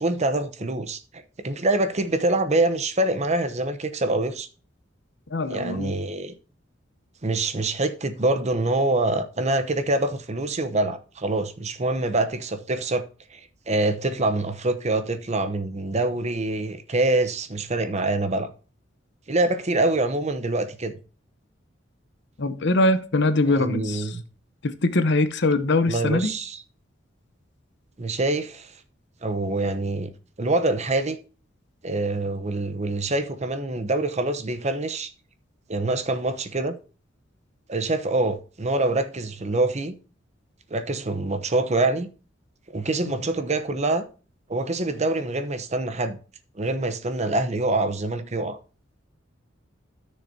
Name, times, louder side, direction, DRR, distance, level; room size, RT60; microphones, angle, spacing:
voice 1, 0.0-4.5 5.5-6.3 7.2-13.0 13.3-13.4 13.7-18.5 19.3-21.0 23.5-24.2 25.9-26.6 28.0-28.7 29.2-30.1 30.4-31.2 31.8-35.1 35.7-36.8 37.7-39.9 40.7-42.1 42.7-44.0 44.5-46.2 46.5-48.6, right 2 dB, 35° right, 0.9 m, -25 dB
voice 2, 5.3-5.9 22.4-24.1 24.6-26.3, left 2 dB, 65° left, 0.9 m, -22 dB
14.0 x 6.6 x 2.8 m
head